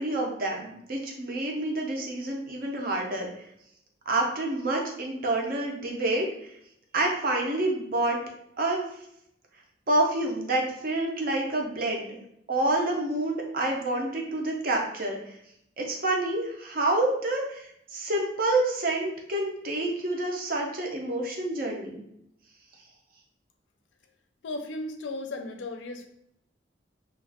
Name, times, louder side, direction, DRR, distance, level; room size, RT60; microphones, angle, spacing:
voice 1, 0.0-3.3 4.1-6.3 6.9-8.2 8.6-8.8 9.9-12.2 12.5-15.2 15.8-22.0, right 2 dB, 50° right, 1 dB, 0.6 m, -28 dB
voice 2, 24.4-26.1, left 2 dB, 80° left, 6 dB, 0.4 m, -35 dB
2.3 x 2.3 x 3.3 m, 0.75 s
head